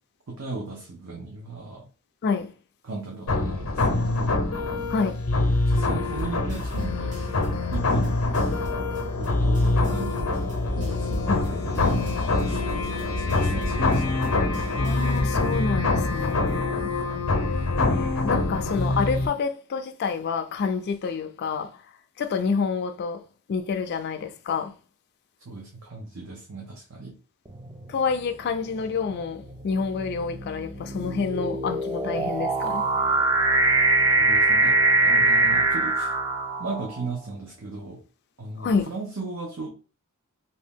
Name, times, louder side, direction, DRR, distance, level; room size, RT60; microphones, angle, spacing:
voice 1, 0.3-1.9 2.8-4.4 5.7-8.2 9.2-12.6 13.0-14.7 18.3-18.8 25.4-27.2 34.2-36.2 36.6-38.0 38.4-39.7, right 3 dB, 75° right, 0.7 m, -37 dB
voice 2, 2.2-2.5 4.9-5.2 11.3-11.5 14.8-16.9 17.8-21.7 22.2-23.2 23.5-24.7 27.9-32.9 38.6-38.9, left 5 dB, 50° left, 0.3 m, -28 dB
sound 1, 3.3-19.3, left 2 dB, 90° left, 0.7 m, -25 dB
sound 2, 6.0-15.5, equal, 35° right, 1.1 m, -39 dB
sound 3, 27.6-28.0 28.8-37.0, right 2 dB, 20° right, 0.4 m, -23 dB
2.8 x 2.7 x 3.5 m
head